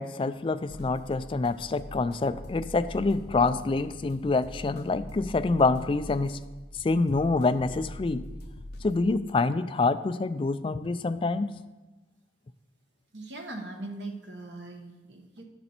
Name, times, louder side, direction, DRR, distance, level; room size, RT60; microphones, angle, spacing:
voice 1, 0.0-6.4 6.8-8.3 8.8-11.5, left 3 dB, 30° left, 12 dB, 0.3 m, -26 dB
sound 1, 0.7-9.0, left 1 dB, 60° left, 0.8 m, -43 dB
voice 2, 13.1-15.4, right 2 dB, 75° right, 3 dB, 1.1 m, -40 dB
9.9 x 6.8 x 4.3 m, 1.1 s
head